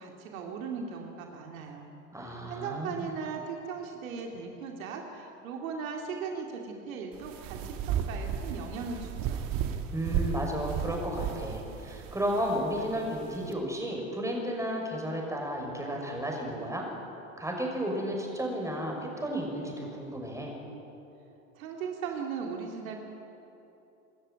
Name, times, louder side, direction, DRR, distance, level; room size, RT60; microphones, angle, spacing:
voice 1, 0.0-1.9 2.2-9.5 21.6-23.0, right 5 dB, 75° right, 2 dB, 2.6 m, -38 dB
voice 2, 2.1-3.1 9.9-16.9 17.4-20.6, equal, 5° right, 0 dB, 6.0 m, -33 dB
sound 1, 7.1-13.5, right 8 dB, 50° right, 1.8 m, -34 dB
26.0 x 13.0 x 9.2 m, 2.9 s
hypercardioid pair, 85°, 42 cm